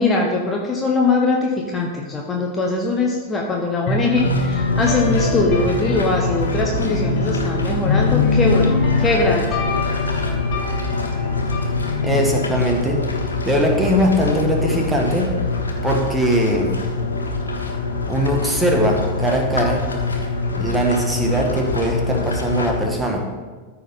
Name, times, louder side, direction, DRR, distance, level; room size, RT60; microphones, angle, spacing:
voice 1, 0.0-9.4, left 3 dB, 20° left, 0 dB, 1.0 m, -21 dB
sound 1, 3.9-13.7, left 3 dB, 35° left, 1.5 m, -24 dB
sound 2, 4.1-22.9, left 3 dB, 75° left, 1.0 m, -24 dB
voice 2, 12.0-13.0 13.4-15.3 15.8-16.7 18.1-19.8 20.6-23.3, equal, 5° right, 0 dB, 1.5 m, -20 dB
13.5 x 4.6 x 3.8 m, 1.4 s
figure-of-eight pair, 90°, 0 cm